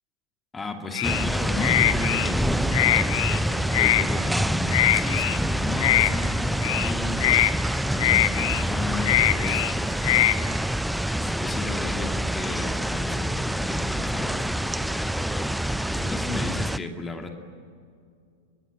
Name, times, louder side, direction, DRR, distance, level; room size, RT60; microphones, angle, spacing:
voice 1, 0.5-7.4 7.8-10.5 11.1-15.5 15.9-17.3, left 3 dB, 15° left, 4 dB, 2.5 m, -34 dB
sound 1, 0.9-1.3 1.6-2.3 2.7-3.4 3.7-4.0 4.7-5.4 5.8-6.1 6.6-6.9 7.2-7.5 8.0-8.6 9.0-9.7 10.0-10.4, left 15 dB, 50° left, 1.2 m, -22 dB
sound 2, 1.0-16.8, right 1 dB, ahead, 0.6 m, -26 dB
27.0 x 22.0 x 8.7 m, 2.3 s
figure-of-eight pair, 90°, 0 cm